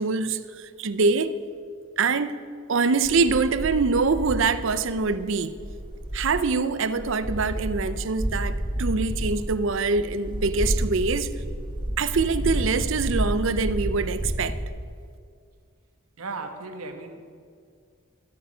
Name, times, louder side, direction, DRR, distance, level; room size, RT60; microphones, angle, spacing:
voice 1, 0.0-1.3 2.0-2.4 2.7-5.5 6.1-11.3 12.0-14.6, right 4 dB, 60° right, 0.5 m, -24 dB
sound 1, 3.0-6.5 6.9-14.7, right 1 dB, 20° right, 1.1 m, -30 dB
voice 2, 16.2-17.3, right 3 dB, 85° right, 1.1 m, -36 dB
12.5 x 8.8 x 6.1 m
head